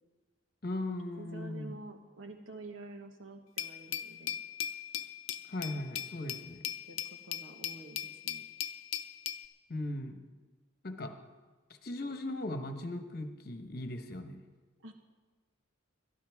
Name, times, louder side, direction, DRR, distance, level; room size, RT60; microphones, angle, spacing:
voice 1, 0.6-1.8 5.5-6.6 9.7-10.2 10.8-11.1 11.8-14.4, left 1 dB, 50° left, 6 dB, 1.1 m, -38 dB
voice 2, 1.2-4.4 5.8-6.1 6.6-7.0 7.2-8.4 14.8-14.9, right 2 dB, 80° right, 4 dB, 1.4 m, -49 dB
Glass, 3.6-9.5, left 10 dB, 85° left, 0.6 m, -39 dB
21.5 x 12.5 x 3.6 m, 1.3 s
head